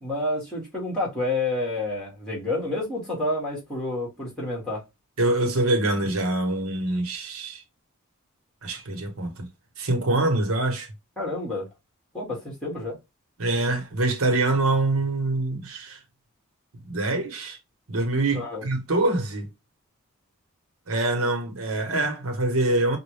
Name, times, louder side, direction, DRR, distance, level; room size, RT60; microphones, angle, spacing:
voice 1, 0.0-4.8 11.2-11.7 12.1-13.0 18.3-18.6, left 2 dB, 5° left, 2.3 m, -29 dB
voice 2, 5.2-7.6 8.6-9.5 9.8-10.9 13.4-16.0 16.8-17.6 17.9-19.5 20.9-23.0, right 2 dB, 85° right, 1.3 m, -25 dB
5.4 x 2.5 x 3.4 m
head